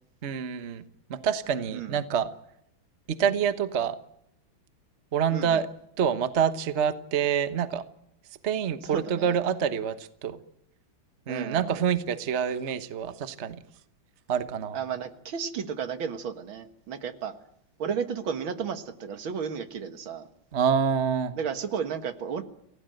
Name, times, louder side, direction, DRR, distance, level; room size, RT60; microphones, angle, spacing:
voice 1, 0.2-0.8 1.1-2.3 3.1-4.0 5.1-5.7 6.0-7.8 8.4-10.4 11.3-13.6 14.3-14.8 20.5-21.3, right 7 dB, 40° right, 11 dB, 1.2 m, -27 dB
voice 2, 1.7-2.1 5.3-5.7 8.8-9.4 11.3-11.9 14.7-17.3 17.8-20.3 21.4-22.4, right 7 dB, 75° right, 9 dB, 2.3 m, -33 dB
28.0 x 17.5 x 7.8 m, 0.76 s
omnidirectional pair, 2.3 m